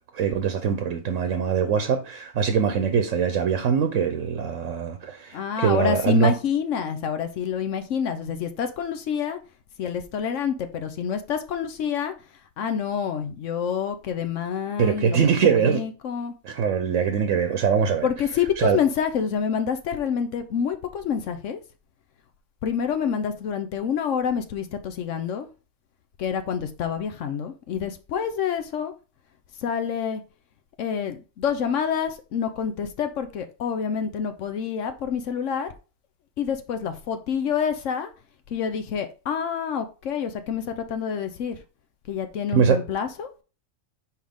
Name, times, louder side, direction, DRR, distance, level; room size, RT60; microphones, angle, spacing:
voice 1, 0.1-6.3 14.8-15.8 16.4-18.1 18.6-18.8 42.5-42.8, right 7 dB, 80° right, 1.1 m, -22 dB
voice 2, 5.3-9.4 9.8-12.1 12.6-16.3 18.0-21.6 22.6-25.5 26.2-28.9 29.6-30.2 30.8-35.7 36.4-38.1 38.5-41.6 42.1-43.3, left 7 dB, 75° left, 1.0 m, -27 dB
5.8 x 4.7 x 3.5 m
omnidirectional pair, 1.3 m